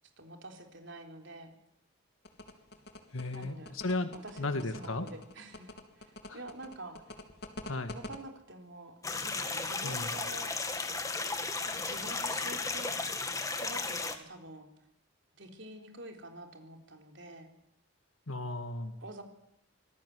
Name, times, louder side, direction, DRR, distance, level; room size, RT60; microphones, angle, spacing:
voice 1, 0.2-1.5 3.3-3.7 4.2-7.0 7.9-10.5 11.6-13.0 13.6-14.7 15.3-17.5 19.0-19.2, right 1 dB, 60° right, 4 dB, 4.1 m, -47 dB
sound 1, 2.2-8.2, left 1 dB, 50° left, 3.0 m, -45 dB
voice 2, 3.1-5.1 6.3-6.4 7.7-7.9 9.8-10.1 18.3-19.0, left 2 dB, 75° left, 9 dB, 1.8 m, -35 dB
sound 2, 9.0-14.2, left 3 dB, 15° left, 2.1 m, -34 dB
25.5 x 19.5 x 9.7 m, 0.76 s
head